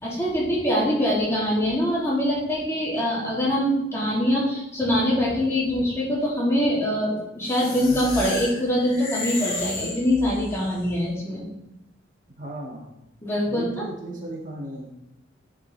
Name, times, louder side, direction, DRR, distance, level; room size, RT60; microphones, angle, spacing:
voice 1, 0.0-11.5 13.2-13.9, equal, 15° left, -6 dB, 2.4 m, -24 dB
sound 1, 7.4-10.7, left 2 dB, 45° left, 3.1 m, -33 dB
voice 2, 12.3-12.9 13.5-14.9, right 1 dB, 45° right, -2 dB, 1.7 m, -35 dB
10.5 x 5.9 x 3.2 m, 0.85 s
head